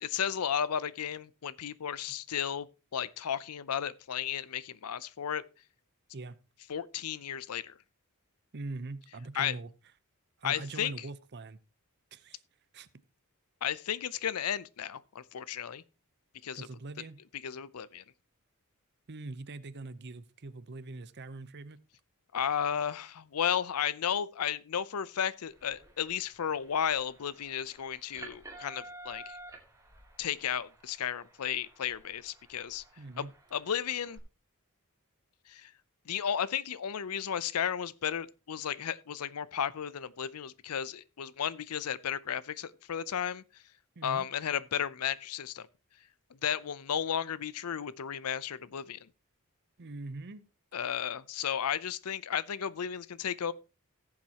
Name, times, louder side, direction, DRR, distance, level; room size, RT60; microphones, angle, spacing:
voice 1, 0.0-2.7 2.9-5.4 6.7-7.7 9.3-9.5 10.4-10.9 13.6-15.8 16.4-16.7 17.4-18.0 22.3-29.4 30.2-32.8 33.2-34.2 35.5-35.7 36.1-43.4 44.0-45.7 46.4-49.1 50.7-53.5, left 8 dB, 85° left, 0.6 m, -34 dB
voice 2, 8.5-9.7 10.4-11.6 12.1-12.4 12.7-12.9 16.5-17.2 19.1-21.8 33.0-33.3 44.0-44.3 49.8-50.4, right 2 dB, 50° right, 0.7 m, -42 dB
sound 1, 25.5-34.2, right 2 dB, 15° right, 2.2 m, -52 dB
17.5 x 7.3 x 2.9 m
head